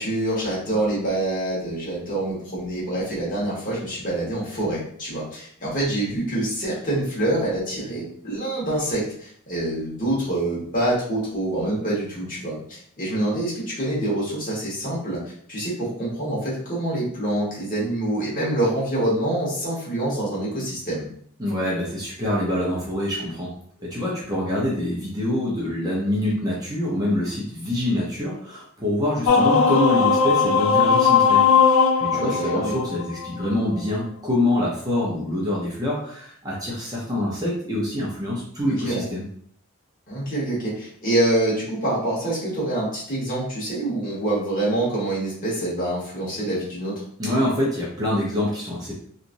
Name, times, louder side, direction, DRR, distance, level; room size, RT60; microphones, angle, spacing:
voice 1, 0.0-15.2 15.5-21.0 32.1-32.7 38.8-39.1 40.1-47.0, right 1 dB, 40° left, -7 dB, 1.3 m, -26 dB
voice 2, 21.4-23.5 23.8-31.5 32.0-39.2 47.2-48.9, left 1 dB, 15° right, -5 dB, 0.6 m, -25 dB
sound 1, 29.3-33.5, left 6 dB, 65° left, 0.3 m, -18 dB
2.9 x 2.4 x 2.5 m, 0.62 s
head